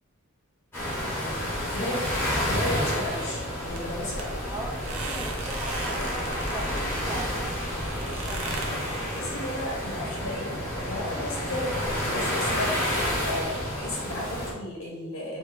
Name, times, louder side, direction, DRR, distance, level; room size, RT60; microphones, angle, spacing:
Beach Waves - Medium Distance, 0.7-14.5, equal, 10° left, 1.1 m, -30 dB
voice 1, 0.8-2.2 4.4-8.6 13.2-13.5, right 1 dB, 10° right, -3 dB, 0.6 m, -40 dB
voice 2, 1.7-2.1 2.4-4.4 9.1-12.7 13.2-15.4, left 1 dB, 65° left, -3 dB, 0.7 m, -34 dB
sound 1, 3.7-8.7, right 2 dB, 80° right, 0.5 m, -37 dB
3.1 x 2.6 x 3.7 m, 1.2 s
head